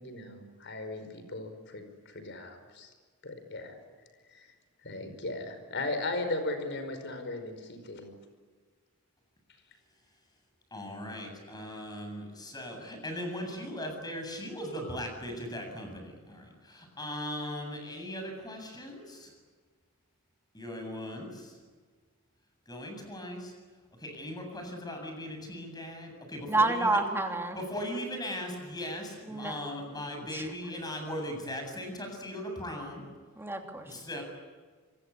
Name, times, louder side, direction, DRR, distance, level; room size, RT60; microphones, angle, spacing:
voice 1, 0.0-2.9 3.2-3.7 4.3-4.5 4.8-8.1, left 2 dB, 55° left, 8 dB, 5.2 m, -37 dB
voice 2, 10.7-19.3 20.5-21.6 22.7-23.5 24.0-27.0 27.5-33.0 33.8-34.2, left 1 dB, 20° left, 4 dB, 8.0 m, -38 dB
voice 3, 26.5-27.6 29.3-29.6 30.3-30.5 33.4-33.9, right 2 dB, 10° right, 3 dB, 3.1 m, -29 dB
26.0 x 23.0 x 9.9 m, 1.5 s
head